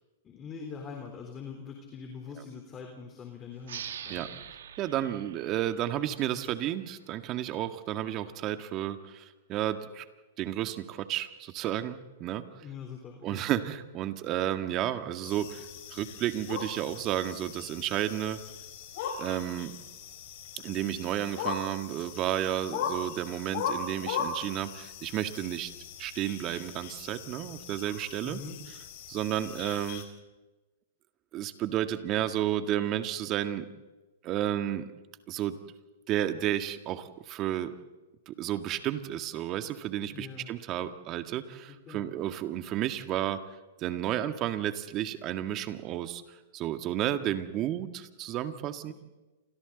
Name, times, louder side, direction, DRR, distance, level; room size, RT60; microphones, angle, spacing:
voice 1, 0.2-4.4 12.6-13.5 28.2-28.6 40.1-40.5 41.7-42.1, left 6 dB, 25° left, 2 dB, 3.8 m, -43 dB
sound 1, 3.6-6.9, right 9 dB, 75° right, 2.1 m, -44 dB
voice 2, 4.8-10.1 10.4-12.6 13.2-15.7 15.9-18.4 19.2-19.7 20.6-25.7 26.0-28.4 29.1-30.1 31.3-33.7 34.2-34.9 35.3-35.6 36.1-37.7 38.3-43.4 43.8-46.2 46.5-48.9, right 12 dB, 35° right, 8 dB, 1.8 m, -32 dB
sound 2, 15.2-30.0, left 6 dB, 55° left, 4.7 m, -39 dB
29.0 x 25.5 x 4.1 m, 1.1 s
hypercardioid pair, 115°, 0 cm